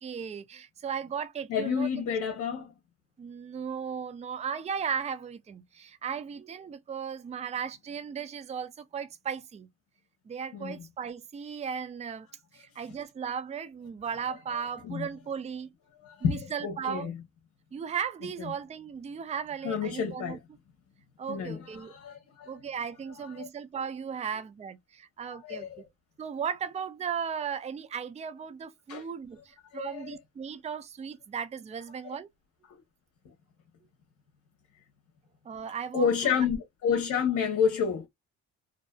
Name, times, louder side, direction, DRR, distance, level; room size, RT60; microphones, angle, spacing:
voice 1, 0.0-2.0 3.2-9.7 10.3-12.3 12.5-15.7 16.2-17.1 17.7-20.4 21.2-22.0 22.5-25.9 26.2-32.3 35.5-36.4, right 7 dB, 25° right, 0.4 m, -36 dB
voice 2, 1.5-2.7 10.5-10.8 14.8-15.0 16.0-17.1 19.6-20.4 21.3-22.5 23.2-23.5 25.3-25.9 28.9-29.0 29.7-30.0 32.0-32.2 35.9-38.1, left 7 dB, 70° left, 0.9 m, -30 dB
2.6 x 2.4 x 2.2 m
cardioid pair, 90°, 30 cm